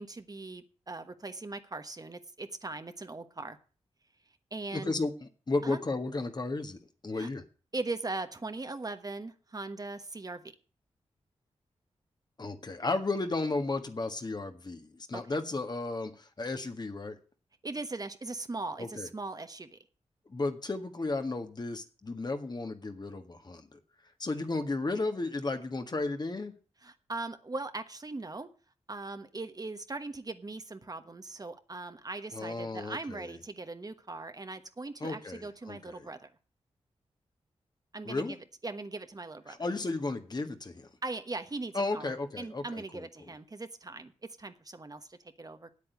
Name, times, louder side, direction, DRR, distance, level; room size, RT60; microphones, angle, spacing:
voice 1, 0.0-3.6 4.5-4.9 5.6-5.8 7.1-7.3 7.7-10.5 15.1-15.4 17.6-19.8 26.8-28.5 28.9-36.3 37.9-38.4 38.6-39.6 41.0-45.7, right 3 dB, 35° right, 9 dB, 1.2 m, -40 dB
voice 2, 4.7-7.4 12.4-17.1 18.8-19.1 20.3-23.8 24.2-26.5 32.3-33.3 35.0-36.1 38.0-38.4 39.5-40.9 41.7-43.0, left 3 dB, 40° left, 7 dB, 1.6 m, -34 dB
8.7 x 8.5 x 8.3 m, 0.38 s
cardioid pair, 60°, 11 cm